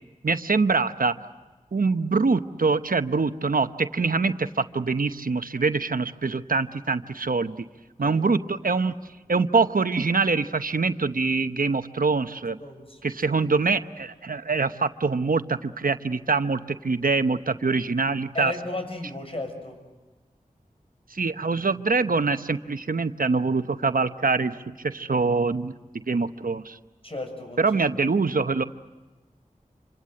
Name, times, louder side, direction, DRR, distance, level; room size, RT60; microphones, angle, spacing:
voice 1, 0.2-1.2 1.7-7.6 8.0-8.9 9.3-12.6 13.0-18.5 21.1-25.7 26.1-26.8 27.6-28.6, right 4 dB, 80° right, 10 dB, 0.9 m, -24 dB
voice 2, 12.6-13.0 13.4-13.5 18.3-19.8 27.0-27.6, left 2 dB, 40° left, 4 dB, 6.8 m, -34 dB
28.0 x 26.0 x 7.7 m, 1.2 s
wide cardioid pair, 40°, 14 cm